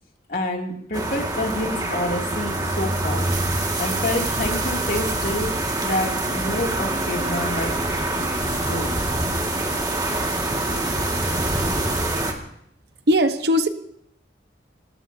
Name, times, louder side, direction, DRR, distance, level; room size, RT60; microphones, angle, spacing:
voice 1, 0.3-3.3 3.8-5.5 5.8-7.7 8.2-8.3 8.7-8.9 9.1-9.2, left 1 dB, 55° left, 0 dB, 3.0 m, -28 dB
sound 1, 0.9-12.3, right 2 dB, 20° right, 2.1 m, -25 dB
sound 2, 7.0-12.1, left 2 dB, 80° left, 5.5 m, -39 dB
voice 2, 13.1-13.7, equal, 70° right, 8 dB, 1.2 m, -20 dB
25.5 x 18.5 x 2.9 m, 0.72 s
head